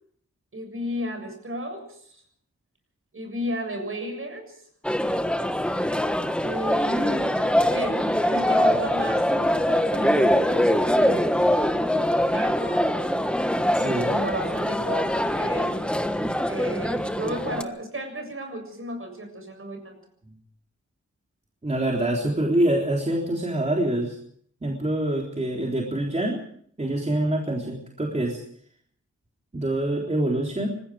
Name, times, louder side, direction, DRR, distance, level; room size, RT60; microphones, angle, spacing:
voice 1, 0.5-2.1 3.1-4.6 6.4-13.2 13.8-15.8 16.5-20.0, right 1 dB, 45° right, 5 dB, 7.3 m, -34 dB
sound 1, 4.8-17.6, left 1 dB, 5° left, 1.3 m, -23 dB
voice 2, 13.7-14.1 21.6-24.2 24.6-26.4 26.8-28.4 29.5-30.7, right 1 dB, 25° right, -1 dB, 3.7 m, -25 dB
25.5 x 20.5 x 5.0 m, 0.62 s
wide cardioid pair, 120°, 29 cm